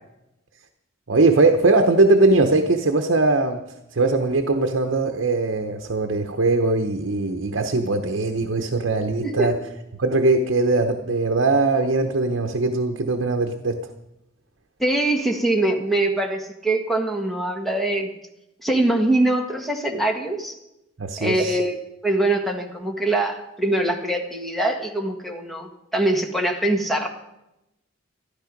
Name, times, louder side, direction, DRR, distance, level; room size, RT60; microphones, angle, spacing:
voice 1, 1.1-3.6 3.9-9.5 10.0-13.8 21.0-21.6, right 2 dB, 65° right, 5 dB, 1.0 m, -20 dB
voice 2, 14.8-18.1 18.6-20.6 21.2-21.8 22.0-27.1, right 1 dB, ahead, 2 dB, 1.6 m, -23 dB
14.0 x 12.0 x 5.2 m, 0.89 s
head